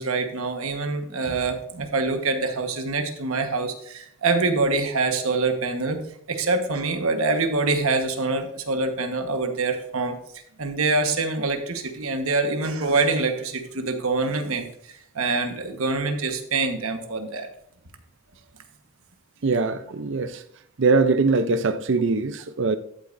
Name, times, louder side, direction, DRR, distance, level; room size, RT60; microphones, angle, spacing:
voice 1, 0.0-6.0 6.3-10.2 10.6-14.7 15.1-17.5, right 3 dB, 75° right, 1.3 m, -25 dB
voice 2, 19.4-20.4 20.8-22.8, right 3 dB, 55° right, 0.5 m, -22 dB
13.0 x 8.5 x 2.6 m
head